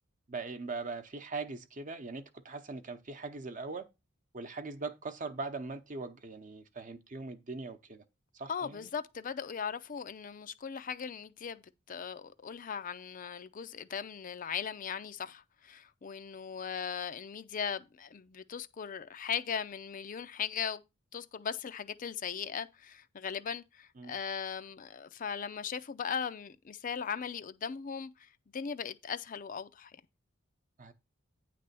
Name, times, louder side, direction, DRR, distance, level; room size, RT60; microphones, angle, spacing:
voice 1, 0.3-3.8 4.3-8.0 8.3-8.9 24.0-24.1 30.8-30.9, right 3 dB, 40° right, 0.8 m, -41 dB
voice 2, 8.5-20.8 21.1-29.9, left 7 dB, 40° left, 0.5 m, -38 dB
9.3 x 3.4 x 6.7 m
head